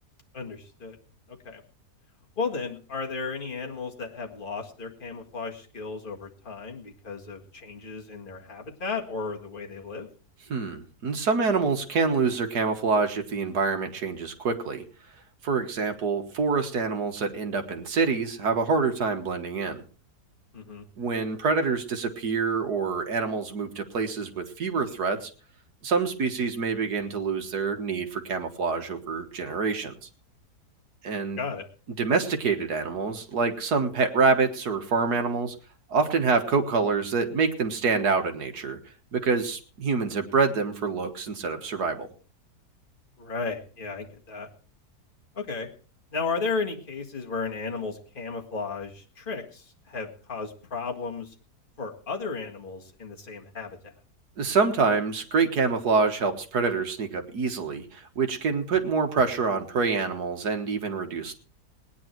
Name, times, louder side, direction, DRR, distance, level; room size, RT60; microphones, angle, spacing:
voice 1, 0.3-1.0 1.3-1.6 2.4-10.1 20.5-20.9 31.4-31.7 43.2-44.5 45.3-45.7 46.1-51.3 51.8-53.9, left 4 dB, 30° left, 1 dB, 2.0 m, -34 dB
voice 2, 10.5-14.8 15.4-19.8 21.0-25.3 25.8-30.1 31.0-31.4 32.0-35.6 35.9-38.8 39.1-42.1 54.4-61.3, right 4 dB, 70° right, 6 dB, 2.0 m, -26 dB
19.0 x 9.8 x 4.6 m, 0.38 s
omnidirectional pair, 1.8 m